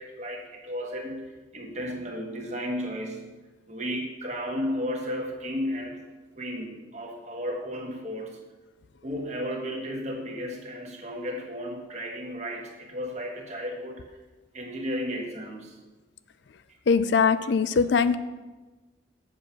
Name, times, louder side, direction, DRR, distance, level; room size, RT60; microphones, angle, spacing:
voice 1, 0.0-3.4 3.7-6.0 6.3-8.4 9.0-14.0 14.5-15.8, equal, 35° right, 1 dB, 1.5 m, -34 dB
voice 2, 16.9-18.2, left 5 dB, 70° left, 13 dB, 0.4 m, -21 dB
7.8 x 7.2 x 5.8 m, 1.2 s
head